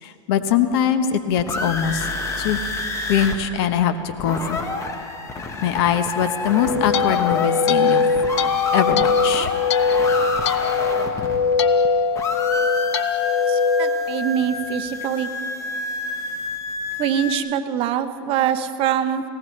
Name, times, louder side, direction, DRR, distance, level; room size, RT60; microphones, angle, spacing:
voice 1, 0.0-2.1 2.4-2.6 3.1-4.6 5.6-8.0 8.7-9.5, left 8 dB, 60° left, 9 dB, 1.1 m, -22 dB
sound 1, 1.1-3.4 3.6-3.7 4.0-11.9 12.1-17.4, left 2 dB, 20° left, 1.5 m, -29 dB
sound 2, 6.4-14.8, left 5 dB, 80° left, 0.7 m, -21 dB
voice 2, 13.5-15.3 17.0-19.2, right 9 dB, 40° right, 8 dB, 0.9 m, -23 dB
20.5 x 17.5 x 3.3 m, 2.6 s
supercardioid pair, 125°, 14 cm